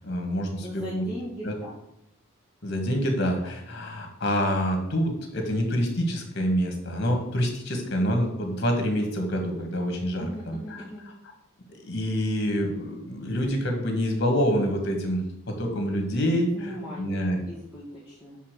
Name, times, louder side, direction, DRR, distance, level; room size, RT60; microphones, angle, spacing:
voice 1, 0.0-1.1 1.4-1.5 2.6-10.8 11.8-17.4, equal, 55° left, 3 dB, 1.9 m, -27 dB
voice 2, 0.6-1.7 10.2-11.0 16.4-18.4, equal, 10° right, -7 dB, 1.7 m, -39 dB
5.7 x 5.6 x 6.7 m, 0.81 s
head